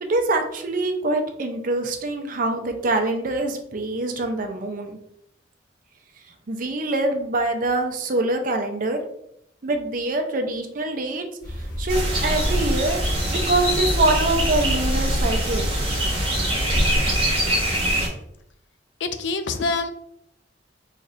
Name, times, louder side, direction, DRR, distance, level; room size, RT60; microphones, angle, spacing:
voice 1, 0.0-5.0 6.5-9.0 9.6-15.7, right 2 dB, 50° right, 4 dB, 0.6 m, -25 dB
sound 1, 11.4-17.4, equal, 50° left, 1.4 m, -30 dB
sound 2, 11.9-18.1, right 1 dB, 30° right, 1.3 m, -23 dB
voice 2, 19.0-19.9, left 3 dB, 70° left, 9 dB, 0.4 m, -25 dB
4.1 x 3.1 x 2.5 m, 0.74 s
head